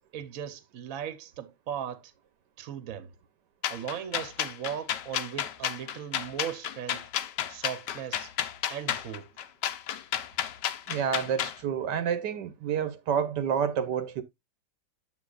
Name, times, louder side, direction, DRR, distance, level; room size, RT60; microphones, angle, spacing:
voice 1, 0.1-2.1 2.6-3.1 3.7-7.1 7.5-8.3 8.7-9.4, right 9 dB, 55° right, 1.2 m, -38 dB
sound 1, 3.6-11.6, left 10 dB, 80° left, 1.3 m, -32 dB
voice 2, 10.9-14.2, right 8 dB, 80° right, 1.4 m, -29 dB
8.3 x 7.8 x 2.4 m
omnidirectional pair, 1.9 m